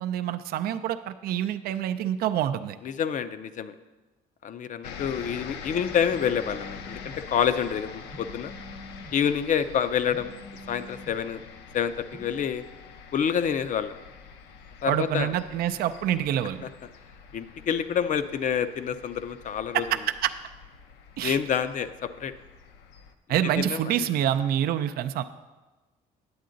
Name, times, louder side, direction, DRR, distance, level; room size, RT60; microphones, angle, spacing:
voice 1, 0.0-2.8 14.9-16.6 19.7-20.3 21.2-21.4 23.3-25.2, right 11 dB, 65° right, 9 dB, 0.4 m, -27 dB
voice 2, 2.8-3.7 4.4-8.5 9.1-10.3 10.7-11.4 11.7-12.6 13.1-14.0 14.8-15.3 17.3-19.8 21.2-22.3 23.6-23.9, left 8 dB, 50° left, 12 dB, 0.5 m, -27 dB
sound 1, 4.8-23.1, left 6 dB, 85° left, 0.7 m, -45 dB
Telephone, 6.1-7.1 8.1-9.1 10.1-11.1 12.1-12.3, equal, 30° right, 0.9 m, -46 dB
9.5 x 8.3 x 3.9 m, 1.2 s
cardioid pair, 110°, 17 cm